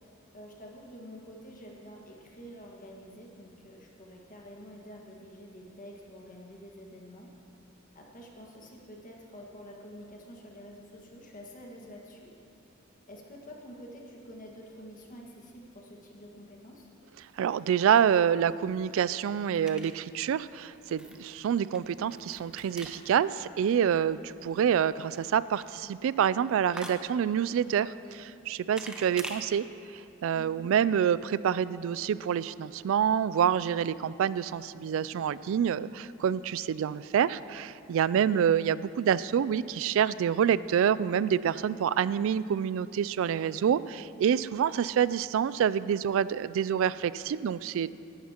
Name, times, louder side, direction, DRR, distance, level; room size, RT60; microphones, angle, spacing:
voice 1, 0.3-7.3 7.9-12.3 13.1-16.9 30.3-30.7 38.1-38.4, equal, 40° left, -1 dB, 1.7 m, -48 dB
voice 2, 17.4-29.6 30.2-47.9, right 8 dB, 70° right, 18 dB, 0.3 m, -27 dB
sound 1, 18.2-29.4, right 1 dB, 5° right, 0.7 m, -48 dB
18.0 x 11.5 x 2.9 m, 2.6 s
head